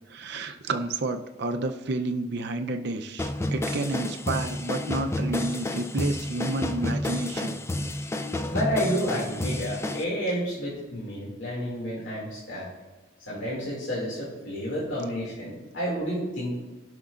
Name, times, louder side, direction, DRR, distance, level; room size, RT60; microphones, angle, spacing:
voice 1, 0.1-7.6, right 2 dB, 65° right, 6 dB, 0.6 m, -30 dB
sound 1, 3.2-10.0, left 1 dB, 15° left, 0.4 m, -30 dB
voice 2, 8.5-12.7 13.3-16.6, equal, 85° left, -6 dB, 2.3 m, -30 dB
15.5 x 6.1 x 2.5 m, 1.2 s
head